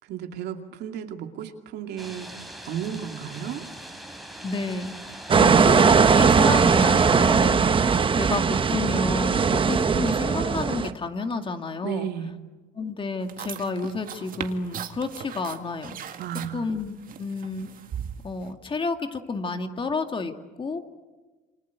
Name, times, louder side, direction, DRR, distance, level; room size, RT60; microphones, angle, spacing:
voice 1, 0.0-3.6 11.8-12.3 16.2-16.7, right 9 dB, 75° right, 5 dB, 2.5 m, -34 dB
sound 1, 2.0-7.4, right 1 dB, ahead, 3.8 m, -41 dB
voice 2, 4.4-12.1 12.8-16.2 16.5-17.7 18.2-20.3 20.6-20.8, left 3 dB, 30° left, 6 dB, 2.2 m, -30 dB
sound 2, 5.3-10.9, right 5 dB, 30° right, 1.3 m, -19 dB
sound 3, 13.2-18.5, right 9 dB, 55° right, 1.9 m, -39 dB
28.5 x 24.5 x 8.3 m, 1.3 s
cardioid pair, 110°, 17 cm